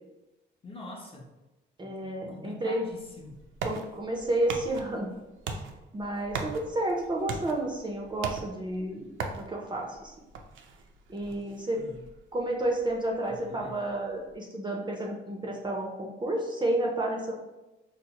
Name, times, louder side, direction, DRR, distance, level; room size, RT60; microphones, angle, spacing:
voice 1, 0.6-1.3 1.8-3.4 11.7-12.0 13.3-13.8, left 2 dB, 25° left, 0 dB, 0.6 m, -45 dB
voice 2, 1.8-2.8 3.6-5.1 5.5-5.6 5.9-10.2 11.1-11.8 12.3-17.3, right 1 dB, 25° right, 0 dB, 0.5 m, -31 dB
sound 1, 2.9-14.3, right 4 dB, 75° right, 0.5 m, -41 dB
4.3 x 2.0 x 2.8 m, 1.0 s
cardioid pair, 90°, 20 cm